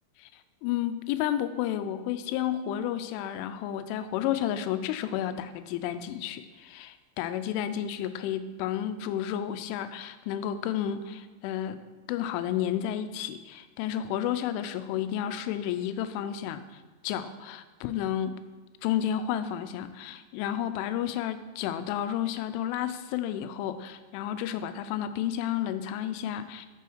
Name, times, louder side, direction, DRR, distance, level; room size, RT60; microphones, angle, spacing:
voice 1, 0.6-11.8 12.1-18.4 18.8-26.7, left 10 dB, 85° left, 11 dB, 3.0 m, -31 dB
8.2 x 7.0 x 4.6 m, 1.3 s
omnidirectional pair, 5.5 m